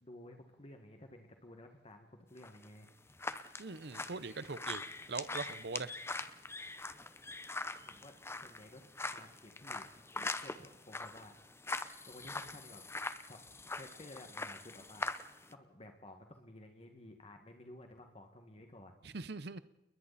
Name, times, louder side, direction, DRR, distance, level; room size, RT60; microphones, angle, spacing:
voice 1, 0.0-2.9 7.9-8.1 8.4-8.8 9.1-9.9 10.1-11.4 12.1-12.8 13.3-15.1 15.5-19.0, left 1 dB, 35° left, 4 dB, 1.9 m, -54 dB
sound 1, 2.4-15.5, left 3 dB, 15° left, 0.9 m, -43 dB
voice 2, 3.6-4.8 5.1-6.0 19.0-19.6, right 4 dB, 65° right, 15 dB, 0.9 m, -41 dB
29.5 x 21.5 x 4.2 m, 0.96 s
head